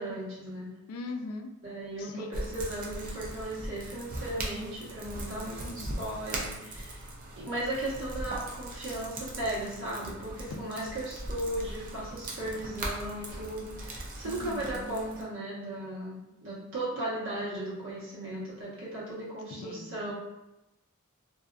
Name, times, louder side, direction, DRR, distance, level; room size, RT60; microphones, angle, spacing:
voice 1, 0.0-0.7 1.6-7.0 7.4-20.1, right 1 dB, 65° right, -8 dB, 1.1 m, -36 dB
voice 2, 0.9-1.5 2.0-2.3 5.5-6.0 10.5-10.7 14.2-14.9 19.6-19.9, left 3 dB, 85° left, 5 dB, 0.3 m, -40 dB
sound 1, 2.3-15.2, right 1 dB, 40° right, 0.5 m, -39 dB
2.6 x 2.4 x 2.3 m, 0.93 s
head